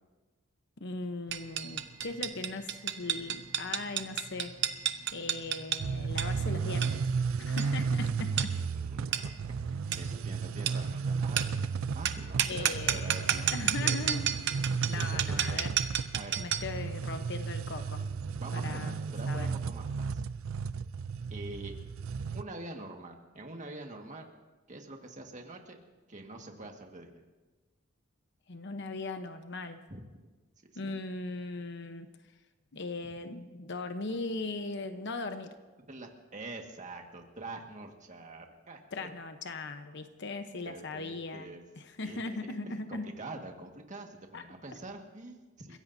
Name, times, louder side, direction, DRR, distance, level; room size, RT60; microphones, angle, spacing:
voice 1, 0.8-4.5 5.1-7.0 7.4-8.5 12.4-14.4 14.9-15.7 16.4-18.0 18.5-19.0 19.3-19.5 28.5-29.8 30.7-32.1 32.7-35.5 38.9-41.5 41.8-43.1 44.3-44.4 45.7-45.8, left 3 dB, 60° left, 7 dB, 1.0 m, -39 dB
sound 1, 1.3-16.8, right 9 dB, 60° right, 0.9 m, -33 dB
sound 2, 5.8-22.4, right 5 dB, 90° right, 0.4 m, -34 dB
voice 2, 8.3-14.4 14.9-15.6 16.1-16.3 18.3-20.2 21.3-21.7 22.3-24.3 24.7-25.8 26.1-27.2 29.9-30.0 30.7-31.0 35.9-39.1 40.7-41.6 42.0-42.5 42.9-45.8, right 2 dB, 40° right, 2 dB, 1.8 m, -45 dB
30.0 x 16.0 x 2.8 m, 1.2 s
head